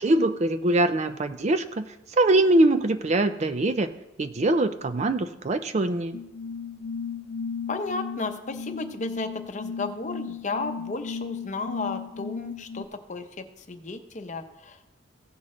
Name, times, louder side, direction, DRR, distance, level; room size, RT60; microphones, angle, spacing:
voice 1, 0.0-1.8 2.1-3.9 4.2-6.2, right 2 dB, 35° right, 10 dB, 0.4 m, -23 dB
sound 1, 6.1-12.9, left 5 dB, 65° left, 0.4 m, -35 dB
voice 2, 7.7-14.9, left 3 dB, 35° left, 7 dB, 0.7 m, -34 dB
16.0 x 6.3 x 3.7 m, 0.96 s
head